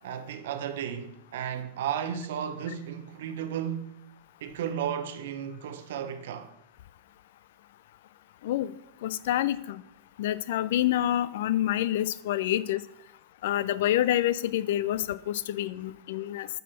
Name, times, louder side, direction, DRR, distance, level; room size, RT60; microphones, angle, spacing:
voice 1, 0.0-4.0 4.4-6.5, right 9 dB, 55° right, 0.7 m, -34 dB
voice 2, 9.0-9.8 10.2-12.8 13.4-16.5, left 12 dB, 55° left, 0.3 m, -27 dB
9.0 x 4.2 x 5.8 m
figure-of-eight pair, 90°, 0 cm